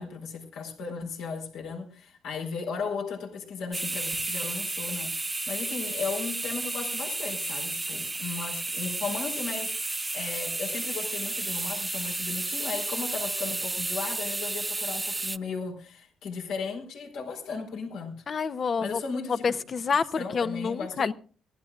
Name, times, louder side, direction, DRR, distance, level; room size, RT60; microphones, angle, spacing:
voice 1, 0.0-18.2 18.8-19.5 20.2-21.1, left 5 dB, 90° left, 4.6 m, -36 dB
sound 1, 3.7-15.4, right 2 dB, 20° right, 0.7 m, -32 dB
voice 2, 18.3-19.0 19.4-21.1, left 5 dB, 45° left, 0.9 m, -28 dB
24.5 x 15.5 x 2.5 m
cardioid pair, 90°, 0 cm